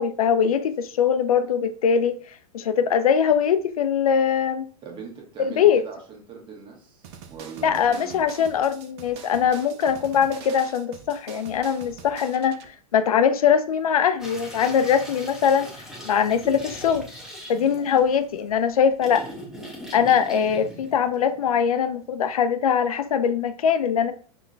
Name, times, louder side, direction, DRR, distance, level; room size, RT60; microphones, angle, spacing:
voice 1, 0.0-2.2 2.5-4.7 5.4-5.8 7.6-12.6 12.9-15.7 16.0-17.1 17.5-19.3 19.9-24.1, left 7 dB, 65° left, 0.4 m, -21 dB
voice 2, 4.8-8.2 17.5-17.8, right 5 dB, 25° right, 1.2 m, -41 dB
sound 1, 7.0-12.7, right 7 dB, 40° right, 0.5 m, -44 dB
sound 2, 14.2-21.8, equal, 5° right, 0.7 m, -41 dB
5.9 x 2.2 x 2.4 m
figure-of-eight pair, 95°, 20 cm